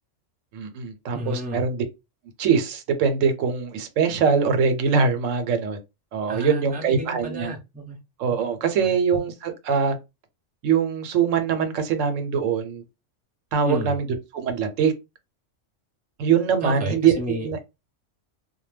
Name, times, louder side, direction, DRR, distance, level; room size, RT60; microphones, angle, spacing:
voice 1, 0.5-1.8 2.4-5.8 6.1-7.5 8.2-10.0 10.6-12.8 13.5-14.1 14.3-14.9 16.2-17.1 17.4-17.6, right 6 dB, 85° right, 1.0 m, -22 dB
voice 2, 1.1-1.6 6.3-8.0 8.6-8.9 13.6-13.9 16.6-17.6, equal, 10° right, 0.6 m, -32 dB
2.2 x 2.1 x 3.2 m
omnidirectional pair, 1.3 m